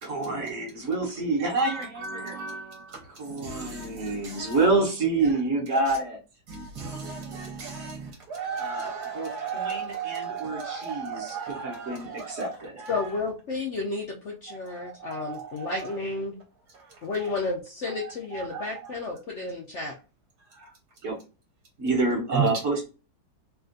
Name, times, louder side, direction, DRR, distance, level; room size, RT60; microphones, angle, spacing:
voice 1, 0.0-2.3 3.1-6.2 8.6-12.8 21.0-21.2 21.8-22.8, right 3 dB, 50° right, 1.2 m, -28 dB
voice 2, 1.4-3.0 3.3-4.6 6.5-12.4 12.8-13.0 14.5-15.8 18.5-18.6 20.6-20.7 22.3-22.5, right 6 dB, 70° right, 1.4 m, -35 dB
voice 3, 12.9-16.4 17.0-19.9, left 3 dB, 70° left, 0.7 m, -32 dB
3.4 x 2.4 x 2.5 m
omnidirectional pair, 1.9 m